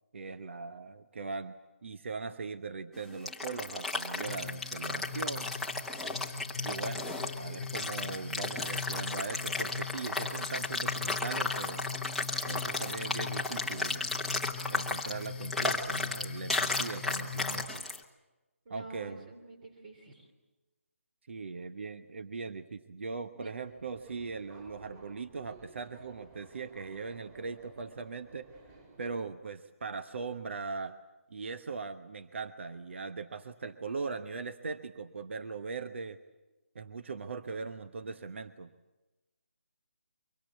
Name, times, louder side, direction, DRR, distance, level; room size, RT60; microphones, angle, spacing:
voice 1, 0.1-1.5 1.8-5.6 6.6-11.8 12.4-14.0 14.7-17.8 18.7-19.3 21.3-28.5 29.0-31.0 31.3-36.2 36.7-38.7, right 4 dB, 55° right, 9 dB, 1.1 m, -40 dB
sound 1, 3.0-18.0, left 3 dB, ahead, 1.2 m, -34 dB
sound 2, 4.2-17.7, left 5 dB, 40° left, 1.5 m, -42 dB
voice 2, 18.6-20.3 23.3-23.5, right 2 dB, 40° right, 5 dB, 3.2 m, -48 dB
Subway metro underground, 23.6-29.2, right 2 dB, 20° right, 6.5 m, -56 dB
24.5 x 24.0 x 8.3 m, 1.1 s
figure-of-eight pair, 160°, 8 cm